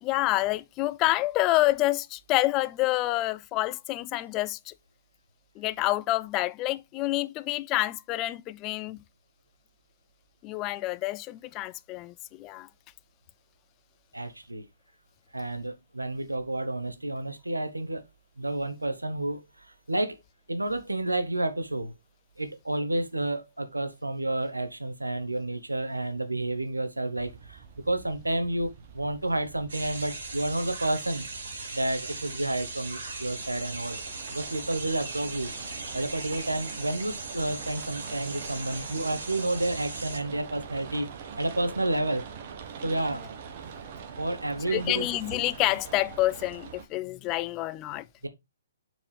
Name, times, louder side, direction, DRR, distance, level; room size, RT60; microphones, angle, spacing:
voice 1, 0.0-4.7 5.6-9.0 10.4-12.7 44.7-48.1, left 17 dB, 25° left, 0.3 m, -28 dB
voice 2, 14.1-14.7 15.3-18.0 18.4-20.2 20.5-21.9 22.4-31.3 31.7-34.0 34.3-35.5 35.9-41.1 41.4-42.3 42.8-43.2 44.2-45.1 48.2-48.3, right 1 dB, 90° right, 1.0 m, -30 dB
sound 1, 27.2-46.9, right 6 dB, 45° right, 1.1 m, -44 dB
sound 2, 29.7-40.2, right 3 dB, 65° right, 2.4 m, -39 dB
7.1 x 4.5 x 3.3 m
figure-of-eight pair, 125°, 0 cm